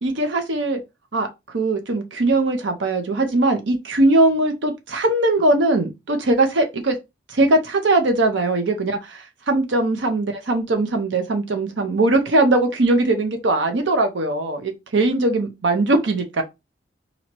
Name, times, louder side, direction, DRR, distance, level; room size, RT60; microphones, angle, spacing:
voice 1, 0.0-0.8 1.1-1.3 1.5-6.9 7.3-16.4, right 2 dB, 85° right, 0.7 m, -20 dB
3.0 x 2.7 x 4.3 m
head